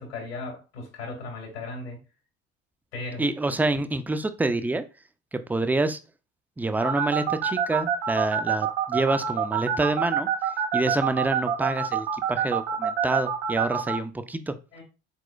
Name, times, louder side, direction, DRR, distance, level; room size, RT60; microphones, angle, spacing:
voice 1, 0.0-2.0 2.9-3.4 14.7-14.8, left 3 dB, 75° left, 2.0 m, -36 dB
voice 2, 3.2-4.8 5.3-6.0 6.6-10.3 10.7-14.5, right 2 dB, 5° right, 0.4 m, -27 dB
sound 1, 6.8-13.9, right 9 dB, 75° right, 1.1 m, -25 dB
4.3 x 4.2 x 2.4 m
figure-of-eight pair, 55°, 32 cm